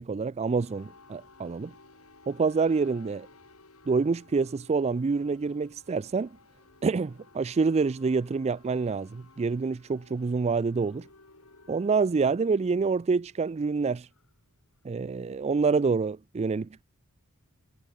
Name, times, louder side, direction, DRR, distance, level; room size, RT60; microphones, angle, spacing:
voice 1, 0.0-1.7 2.3-3.3 3.9-6.3 6.8-11.1 11.7-14.1 14.8-16.8, right 4 dB, 30° right, 0.4 m, -27 dB
sound 1, 0.6-14.8, left 3 dB, 80° left, 5.1 m, -57 dB
head